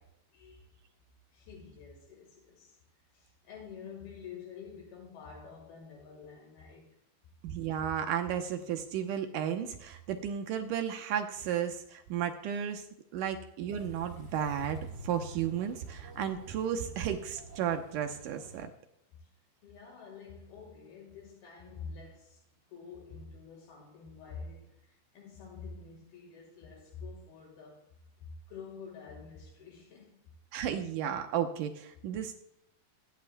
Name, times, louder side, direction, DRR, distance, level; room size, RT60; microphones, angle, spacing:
voice 1, 0.3-0.8 1.3-2.8 3.1-7.0 19.1-19.3 19.6-22.4 22.7-30.2, left 5 dB, 75° left, 3.3 m, -48 dB
voice 2, 7.4-12.9 13.1-14.8 15.0-18.7 30.5-32.4, right 9 dB, 75° right, 2.0 m, -33 dB
sound 1, 13.7-18.7, right 2 dB, 35° right, 2.6 m, -47 dB
17.0 x 10.5 x 2.2 m
omnidirectional pair, 4.5 m